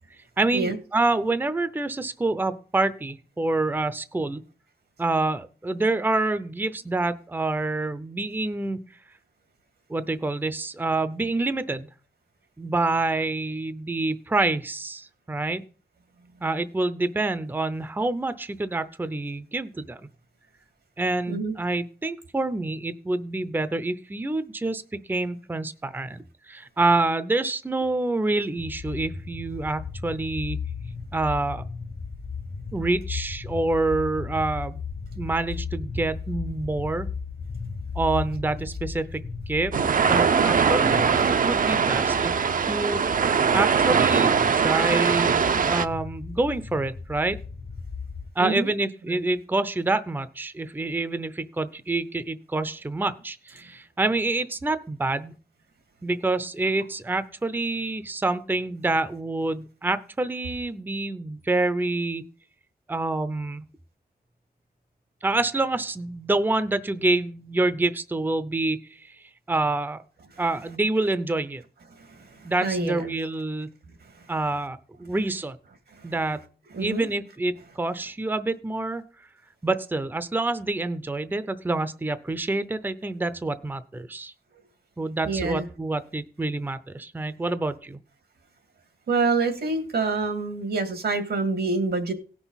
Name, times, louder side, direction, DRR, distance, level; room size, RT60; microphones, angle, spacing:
voice 1, 0.4-4.4 5.0-8.8 9.9-11.9 12.6-15.6 16.4-20.0 21.0-24.8 25.1-30.6 31.1-31.6 32.7-34.8 35.2-37.1 38.0-42.3 42.7-43.0 43.5-47.4 48.4-55.3 56.0-62.2 62.9-63.7 65.2-69.1 69.5-70.0 70.4-71.6 72.4-73.7 74.3-75.6 76.0-76.4 76.8-79.0 79.6-84.3 85.0-88.0, right 2 dB, 10° right, 13 dB, 0.6 m, -27 dB
sound 1, 28.6-48.3, left 5 dB, 45° left, 0.9 m, -36 dB
sound 2, 39.7-45.9, right 6 dB, 60° right, 0.6 m, -21 dB
voice 2, 72.4-73.1 76.0-76.1 76.7-77.1 85.3-85.6 89.1-92.1, right 3 dB, 90° right, 6 dB, 2.2 m, -26 dB
17.5 x 6.0 x 4.1 m, 0.38 s
wide cardioid pair, 120°, 16 cm